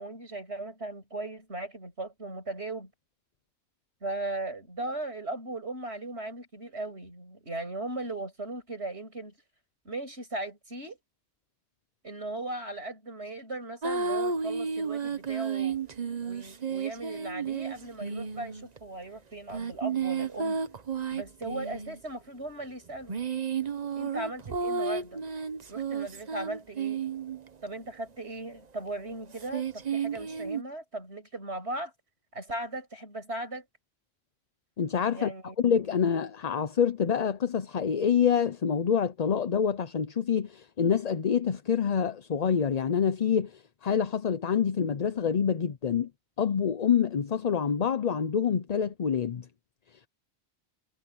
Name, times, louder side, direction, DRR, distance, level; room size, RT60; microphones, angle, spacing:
voice 1, 0.0-2.9 4.0-9.3 9.9-11.0 12.0-15.8 16.2-20.6 21.1-23.1 23.9-25.2 25.7-27.0 27.6-31.9 32.3-33.7 35.1-35.6, right 2 dB, 70° right, 7.3 m, -38 dB
sound 1, 13.8-18.8 19.5-22.0 22.9-27.5 29.4-30.6, right 6 dB, 40° right, 1.0 m, -32 dB
voice 2, 34.8-35.3 35.6-43.5 43.8-46.1 46.4-49.5, left 7 dB, 40° left, 0.7 m, -26 dB
omnidirectional pair, 1.2 m